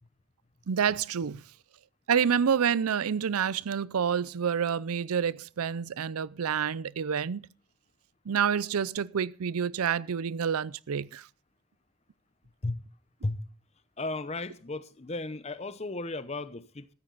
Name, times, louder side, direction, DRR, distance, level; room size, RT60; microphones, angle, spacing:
voice 1, 0.7-1.4 2.1-7.4 8.3-11.3, right 7 dB, 90° right, 0.5 m, -28 dB
voice 2, 14.0-16.9, left 2 dB, 30° left, 0.8 m, -35 dB
14.0 x 13.0 x 4.0 m
head